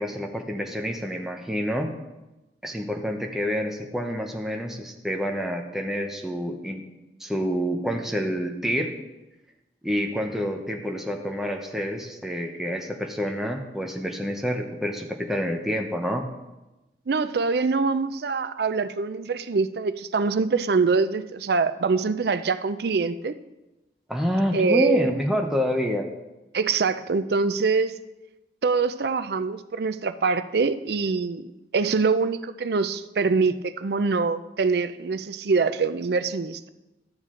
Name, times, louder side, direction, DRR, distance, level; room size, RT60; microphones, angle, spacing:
voice 1, 0.0-1.9 2.6-6.8 7.2-8.9 9.8-16.3 24.1-26.1, equal, ahead, 2 dB, 0.8 m, -28 dB
voice 2, 17.1-23.3 24.5-25.1 26.5-27.9 28.6-31.5 31.7-36.7, right 4 dB, 60° right, 12 dB, 0.5 m, -24 dB
12.0 x 8.0 x 3.8 m, 1.0 s
head